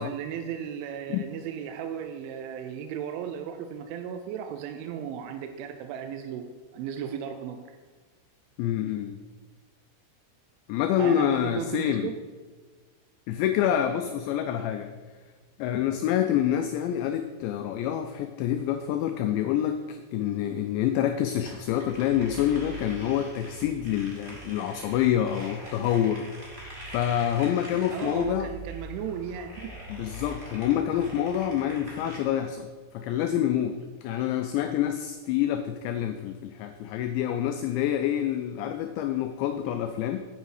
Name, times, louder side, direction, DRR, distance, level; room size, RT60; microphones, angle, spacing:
voice 1, 0.0-7.8 11.0-12.1 27.9-29.8, right 8 dB, 80° right, 6 dB, 2.8 m, -35 dB
voice 2, 8.6-9.2 10.7-12.1 13.3-14.9 15.6-26.3 26.9-28.5 29.9-32.7 32.9-40.3, left 10 dB, 90° left, 7 dB, 2.5 m, -27 dB
sound 1, 21.3-32.2, right 1 dB, 20° right, 1.4 m, -43 dB
9.6 x 9.3 x 4.8 m, 1.4 s
omnidirectional pair, 5.8 m